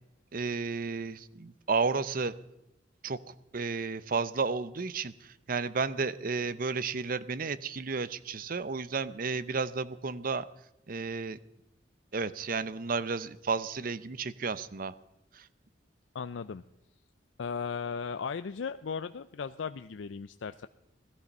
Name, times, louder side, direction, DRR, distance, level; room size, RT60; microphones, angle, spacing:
voice 1, 0.3-2.3 3.0-3.2 3.5-5.1 5.5-10.4 10.9-11.4 12.1-14.9, right 4 dB, 50° right, 16 dB, 0.7 m, -32 dB
voice 2, 16.1-16.6 17.4-20.7, left 5 dB, 90° left, 11 dB, 0.5 m, -36 dB
17.5 x 13.0 x 5.4 m, 0.87 s
head